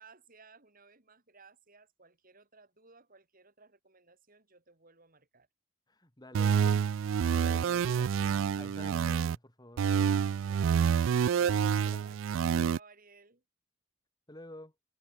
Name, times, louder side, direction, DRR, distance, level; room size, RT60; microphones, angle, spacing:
voice 1, 0.0-5.5 10.4-13.4, right 4 dB, 45° right, 4.8 m, -59 dB
voice 2, 5.9-6.8 7.3-9.9 11.4-12.2 14.3-14.7, left 1 dB, 20° left, 3.4 m, -50 dB
sound 1, 6.3-9.4 9.8-12.8, right 7 dB, 65° right, 0.3 m, -28 dB
head